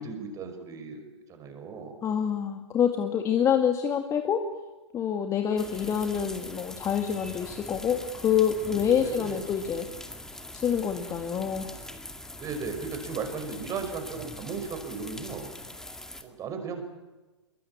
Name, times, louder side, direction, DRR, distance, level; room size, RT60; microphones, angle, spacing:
voice 1, 0.0-1.9 9.0-9.4 12.4-15.5 16.2-16.9, right 5 dB, 20° right, 6 dB, 5.7 m, -36 dB
voice 2, 2.0-4.4 4.9-9.9 10.5-11.7, left 8 dB, 20° left, 5 dB, 2.1 m, -26 dB
sound 1, 5.6-16.2, left 1 dB, 5° left, 2.2 m, -42 dB
26.0 x 23.0 x 8.7 m, 1.2 s
figure-of-eight pair, 115°, 15 cm